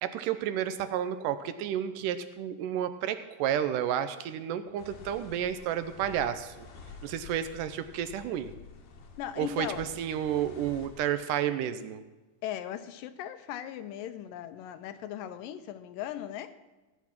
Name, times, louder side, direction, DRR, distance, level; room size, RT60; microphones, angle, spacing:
voice 1, 0.0-6.7 7.0-8.5 9.4-12.0, right 10 dB, 80° right, 11 dB, 2.1 m, -31 dB
sound 1, 4.8-11.1, left 5 dB, 60° left, 1.8 m, -49 dB
voice 2, 9.2-9.8 12.4-16.5, left 11 dB, 80° left, 11 dB, 2.4 m, -38 dB
16.0 x 8.2 x 5.9 m, 1.1 s
omnidirectional pair, 4.0 m